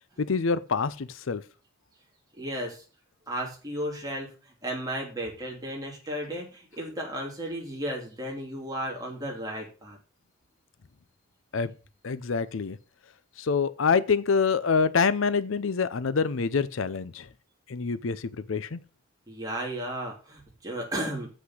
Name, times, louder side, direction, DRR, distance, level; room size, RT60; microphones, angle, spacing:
voice 1, 0.2-1.4 11.5-11.7 12.0-12.8 13.4-17.3 17.7-18.8, left 5 dB, 70° left, 0.6 m, -26 dB
voice 2, 2.4-2.8 3.3-10.0 19.3-21.3, equal, 20° right, 3.0 m, -34 dB
8.1 x 5.8 x 6.2 m
head